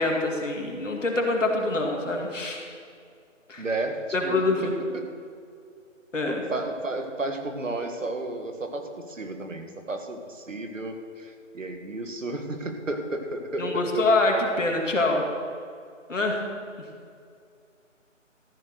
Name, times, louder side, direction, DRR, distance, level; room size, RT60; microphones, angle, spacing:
voice 1, 0.0-2.6 3.5-3.7 4.1-4.7 6.1-6.4 13.6-15.3 16.1-16.5, left 2 dB, 70° left, 1 dB, 2.3 m, -25 dB
voice 2, 3.6-5.1 6.2-14.1, right 2 dB, 75° right, 5 dB, 1.7 m, -33 dB
13.5 x 6.8 x 6.5 m, 2.3 s
figure-of-eight pair, 175°, 39 cm